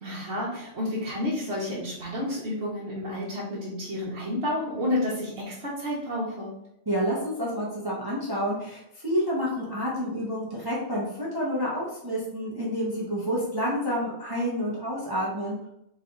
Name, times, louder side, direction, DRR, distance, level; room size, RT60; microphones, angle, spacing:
voice 1, 0.0-6.5, left 1 dB, 55° right, -7 dB, 1.2 m, -30 dB
voice 2, 6.9-15.7, equal, 20° right, -6 dB, 0.8 m, -29 dB
3.3 x 3.2 x 3.7 m, 0.81 s
omnidirectional pair, 1.4 m